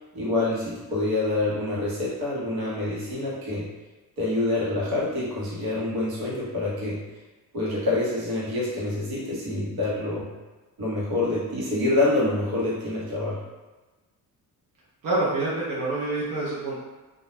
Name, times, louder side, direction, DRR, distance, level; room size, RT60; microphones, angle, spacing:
voice 1, 0.1-3.7 4.2-7.0 7.5-10.3 10.8-13.4, left 2 dB, 90° right, -6 dB, 1.0 m, -26 dB
voice 2, 15.0-16.8, right 2 dB, 65° right, -7 dB, 0.7 m, -27 dB
2.3 x 2.2 x 2.9 m, 1.2 s
cardioid pair, 130°, 36 cm